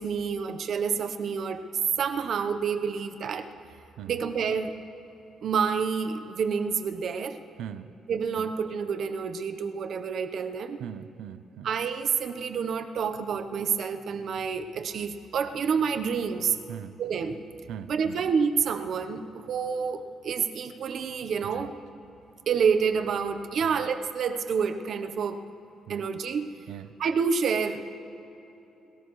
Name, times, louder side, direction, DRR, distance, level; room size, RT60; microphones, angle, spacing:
voice 1, 0.0-1.6 2.0-3.5 4.1-4.7 5.4-7.4 8.1-10.8 11.6-16.6 17.0-17.4 17.9-21.7 22.5-25.4 25.9-26.5 27.0-27.9, right 6 dB, 65° right, 9 dB, 0.9 m, -28 dB
voice 2, 7.6-7.9 8.4-8.5 10.8-11.7 16.7-17.0 17.7-18.2 21.5-21.7 23.6-23.8 25.9-26.1 26.7-26.9, right 9 dB, 85° right, 13 dB, 0.5 m, -40 dB
30.0 x 13.0 x 3.2 m, 3.0 s
cardioid pair, 90°, 0 cm